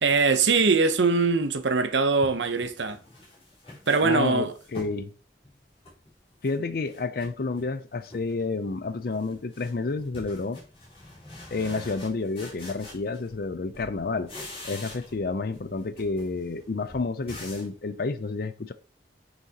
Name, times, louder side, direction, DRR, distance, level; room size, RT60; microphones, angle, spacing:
voice 1, 0.0-3.0 3.9-4.5, right 4 dB, 85° right, 0.8 m, -22 dB
sound 1, 2.2-5.0 5.4-6.6 6.9-7.7 8.0-8.5 8.8-13.5 13.7-15.3 15.5-17.8, left 1 dB, 30° left, 4.1 m, -45 dB
voice 2, 4.0-5.1 6.4-10.6 11.5-14.3 14.6-18.7, left 3 dB, 55° left, 0.5 m, -30 dB
9.5 x 5.8 x 2.9 m
head